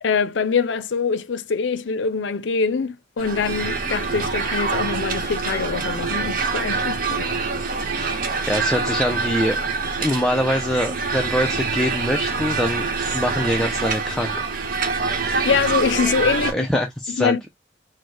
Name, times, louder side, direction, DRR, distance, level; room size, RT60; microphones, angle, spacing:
voice 1, 0.0-7.3 15.4-17.4, left 5 dB, 75° left, 0.5 m, -24 dB
sound 1, 3.2-16.5, right 4 dB, 50° right, 1.0 m, -25 dB
voice 2, 7.9-9.6 10.0-12.9 13.1-14.5 16.5-17.5, equal, 5° left, 0.5 m, -24 dB
4.4 x 2.1 x 4.6 m
head